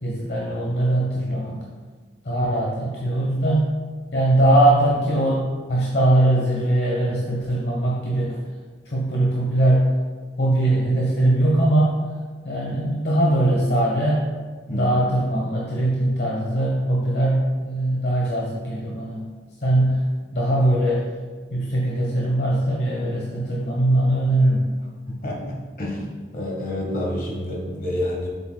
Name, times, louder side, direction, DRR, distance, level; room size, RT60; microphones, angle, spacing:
voice 1, 0.0-1.6 2.2-3.7 4.1-8.4 8.8-9.9 10.4-12.0 12.4-14.3 14.7-19.3 19.6-20.0 20.3-21.1 21.5-24.7, right 1 dB, 65° left, -3 dB, 1.0 m, -21 dB
voice 2, 25.1-26.0 26.3-28.3, left 1 dB, 50° left, -2 dB, 1.5 m, -28 dB
7.4 x 7.0 x 2.3 m, 1.5 s
head